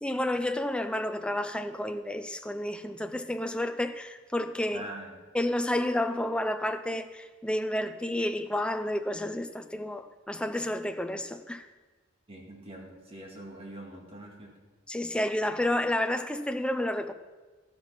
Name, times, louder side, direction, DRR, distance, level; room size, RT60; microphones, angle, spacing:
voice 1, 0.0-4.8 5.3-11.7 14.9-17.1, left 1 dB, 5° left, 0.5 m, -30 dB
voice 2, 4.7-5.1 12.3-14.5, right 1 dB, 30° right, 2.2 m, -43 dB
13.5 x 6.0 x 5.9 m
head